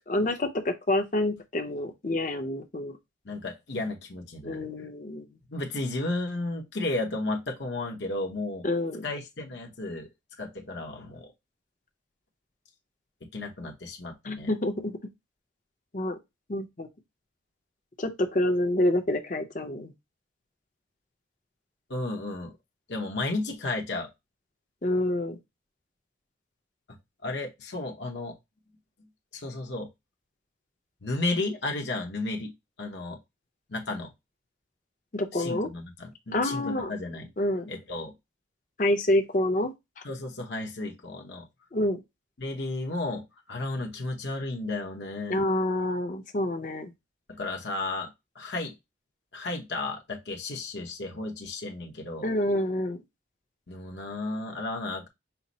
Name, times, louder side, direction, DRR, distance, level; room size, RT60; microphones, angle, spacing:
voice 1, 0.1-2.9 4.4-5.2 8.6-9.0 14.2-15.0 15.9-16.1 16.5-16.9 18.0-19.9 24.8-25.4 35.1-35.7 36.3-36.9 37.4-37.7 38.8-39.7 41.7-42.0 45.3-46.9 52.2-53.0, left 1 dB, 45° left, 0.7 m, -27 dB
voice 2, 3.2-4.7 5.5-8.6 9.0-10.1 10.4-11.3 13.2-14.5 21.9-22.6 22.9-24.1 27.2-28.3 29.3-29.9 31.0-32.5 32.8-33.2 33.7-34.1 35.3-37.3 37.7-38.1 40.0-41.5 42.4-45.4 47.3-48.7 49.3-52.3 53.7-55.1, left 2 dB, 65° left, 0.9 m, -33 dB
5.7 x 2.0 x 4.0 m
head